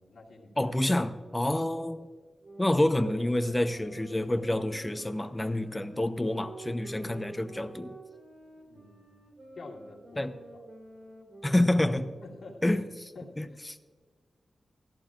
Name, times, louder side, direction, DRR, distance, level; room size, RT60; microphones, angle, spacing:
voice 1, 0.0-0.8 1.5-1.6 8.7-10.6 12.2-13.6, left 3 dB, 75° left, -5 dB, 2.3 m, -49 dB
voice 2, 0.6-2.1 2.6-8.0 10.2-10.3 11.4-12.1 12.6-12.8 13.4-13.5, left 1 dB, 20° left, 10 dB, 0.8 m, -28 dB
sound 1, 2.4-12.4, right 2 dB, 65° right, 4.0 m, -49 dB
17.0 x 14.0 x 2.5 m, 1.6 s
cardioid pair, 60°, 0 cm